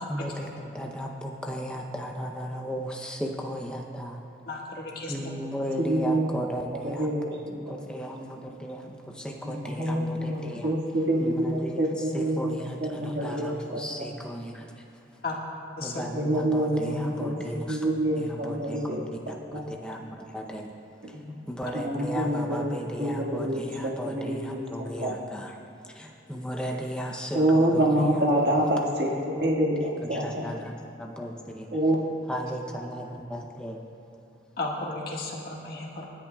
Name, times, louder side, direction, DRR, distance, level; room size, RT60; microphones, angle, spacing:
voice 1, 0.1-4.2 5.1-7.1 7.7-10.7 11.2-11.8 12.1-14.8 15.8-17.9 18.2-19.0 19.3-20.7 21.1-21.2 21.5-25.5 25.9-28.3 30.1-31.7 32.3-33.8, equal, 5° left, 0 dB, 0.6 m, -35 dB
voice 2, 4.4-5.1 15.2-15.3 15.8-16.0 34.6-36.0, left 2 dB, 55° left, -2 dB, 1.6 m, -34 dB
voice 3, 5.8-6.4 6.7-7.9 9.4-14.1 15.9-19.1 19.5-19.6 21.1-21.3 21.7-22.7 23.0-25.1 27.3-30.5 31.7-32.0, right 1 dB, 60° right, -2 dB, 1.8 m, -27 dB
24.5 x 10.5 x 2.3 m, 2.7 s
head